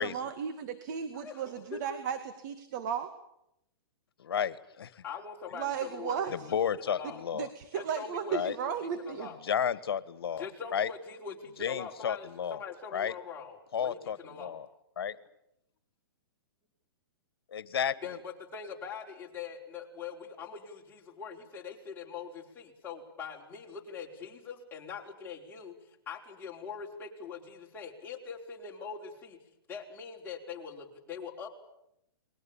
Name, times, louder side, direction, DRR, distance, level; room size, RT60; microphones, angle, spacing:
voice 1, 0.0-2.2 2.4-3.1 5.5-6.3 7.3-9.3, right 8 dB, 50° right, 9 dB, 2.1 m, -35 dB
voice 2, 4.2-5.0 6.5-7.5 8.3-8.5 9.4-10.9 11.6-12.6 12.9-13.1 13.7-14.7 15.0-15.2 17.5-18.0, left 8 dB, 80° left, 18 dB, 1.5 m, -32 dB
voice 3, 5.0-6.5 6.8-7.2 7.7-9.4 10.4-14.6 18.0-25.7 26.1-29.4 29.7-31.5, left 6 dB, 15° left, -2 dB, 4.9 m, -43 dB
29.5 x 21.5 x 7.2 m, 0.80 s
hypercardioid pair, 140°, 13 cm